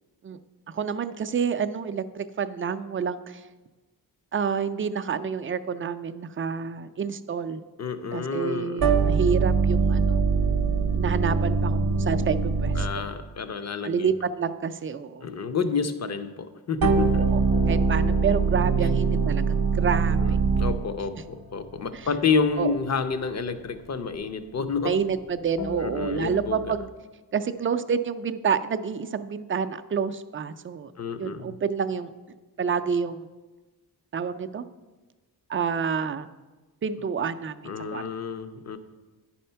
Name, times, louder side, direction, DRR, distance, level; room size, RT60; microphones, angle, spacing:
voice 1, 0.7-3.4 4.3-7.6 8.1-10.2 10.9-13.0 13.8-15.3 17.1-17.4 17.7-20.4 21.9-22.1 22.6-22.7 24.8-26.9 27.3-30.9 31.2-32.1 32.6-33.3 34.1-34.7 35.5-36.3 36.8-38.0, right 6 dB, 35° right, 10 dB, 0.4 m, -28 dB
voice 2, 7.8-9.0 12.8-14.1 15.2-17.3 20.2-24.9 25.8-26.7 31.0-31.5 37.6-38.8, left 5 dB, 45° left, 10 dB, 0.6 m, -29 dB
sound 1, 8.8-13.2 16.8-21.0, right 5 dB, 65° right, 0.7 m, -23 dB
sound 2, 16.9-26.9, left 5 dB, 80° left, 1.0 m, -41 dB
10.0 x 4.3 x 5.6 m, 1.2 s
wide cardioid pair, 115°, 39 cm